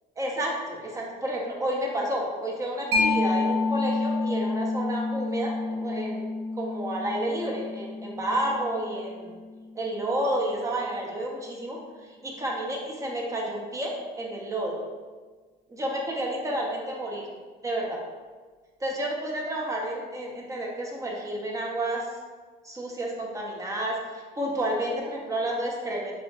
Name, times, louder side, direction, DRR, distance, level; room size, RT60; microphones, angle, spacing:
voice 1, 0.2-6.2 6.6-9.4 9.8-11.8 12.2-14.8 15.7-17.3 17.6-18.0 18.8-22.1 22.6-26.1, right 1 dB, 20° right, -2 dB, 0.8 m, -30 dB
Mallet percussion, 2.9-10.2, left 3 dB, 90° right, 0.7 m, -29 dB
5.7 x 2.4 x 2.3 m, 1.4 s
cardioid pair, 110°, 17 cm